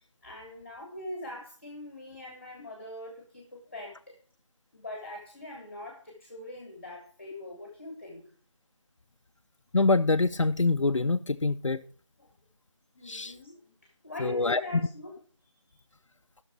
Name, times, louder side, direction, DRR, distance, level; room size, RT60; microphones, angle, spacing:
voice 1, 0.0-4.1 4.7-8.2 12.2-12.3 12.9-13.6 14.0-15.2, left 2 dB, 25° left, 1.7 m, -42 dB
voice 2, 9.7-11.8 13.1-13.3 14.2-14.6, left 3 dB, 80° left, 0.6 m, -25 dB
14.5 x 6.5 x 4.4 m
figure-of-eight pair, 175°, 16 cm